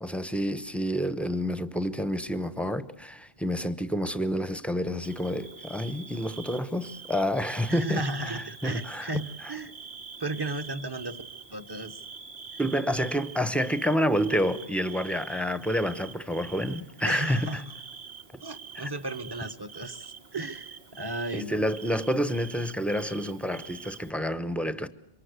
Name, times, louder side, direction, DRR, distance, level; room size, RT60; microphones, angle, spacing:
voice 1, 0.0-9.1 12.6-17.6 18.3-18.4 18.8-18.9 21.3-24.9, equal, ahead, 0.9 m, -29 dB
Bird / Cricket, 5.0-24.1, right 5 dB, 75° right, 1.8 m, -45 dB
voice 2, 7.7-9.7 10.2-11.2 11.5-12.0 17.0-17.6 18.4-21.7, right 2 dB, 25° right, 1.2 m, -34 dB
27.0 x 24.0 x 8.2 m
omnidirectional pair, 1.1 m